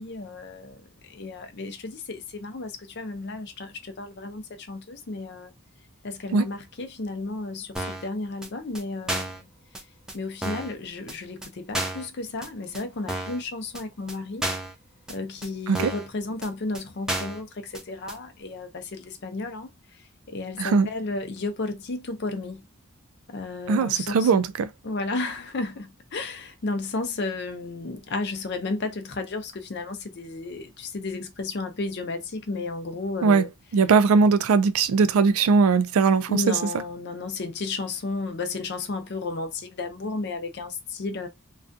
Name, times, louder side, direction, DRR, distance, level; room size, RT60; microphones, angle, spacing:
voice 1, 0.0-5.5 6.0-9.5 10.1-14.5 15.1-22.6 23.3-24.4 24.8-33.5 36.3-41.3, left 3 dB, 50° left, 0.5 m, -33 dB
sound 1, 7.8-8.1 8.4-8.5 8.8-8.9 9.1-9.4 9.8-9.9 10.1-10.2 10.4-10.7 11.1-11.2 11.4-11.5 11.7-12.1 12.4-12.5 12.7-12.8 13.1-13.4 13.8-13.9 14.1-14.2 14.4-14.7 15.1-15.2 15.4-15.5 15.8-16.1 16.4-16.5 16.7-16.8 17.1-17.4 17.7-17.8 18.1-18.2, right 1 dB, 5° right, 0.3 m, -31 dB
voice 2, 20.6-20.9 23.7-24.7 33.2-33.5 33.7-36.6, right 5 dB, 80° right, 0.3 m, -20 dB
2.4 x 2.2 x 2.5 m
head